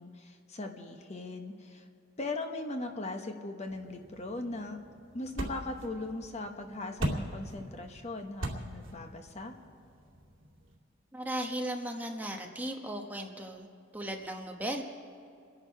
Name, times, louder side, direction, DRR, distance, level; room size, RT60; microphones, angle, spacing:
voice 1, 0.0-1.9 2.2-4.8 5.1-9.6, left 2 dB, 35° left, 5 dB, 1.0 m, -39 dB
sound 1, 3.7-10.8, right 1 dB, 75° right, 2.4 m, -41 dB
voice 2, 11.1-13.7 13.9-14.8, right 1 dB, 10° right, 2 dB, 1.0 m, -36 dB
28.5 x 11.0 x 4.6 m, 2.4 s
head